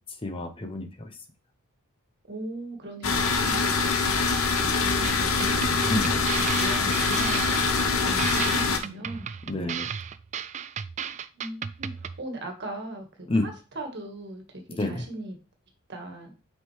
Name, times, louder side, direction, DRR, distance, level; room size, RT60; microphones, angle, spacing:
voice 1, 0.2-1.1 5.9-6.1 9.5-9.9 13.3-13.5 14.7-15.1, left 2 dB, 25° left, 0.8 m, -28 dB
voice 2, 2.3-3.7 4.6-6.0 6.4-9.3 11.3-15.3 15.9-16.3, right 1 dB, 55° right, 1.6 m, -39 dB
sound 1, 3.0-8.8, left 4 dB, 90° left, 1.0 m, -24 dB
sound 2, 5.0-12.2, right 8 dB, 35° right, 0.3 m, -35 dB
5.9 x 5.5 x 3.2 m
head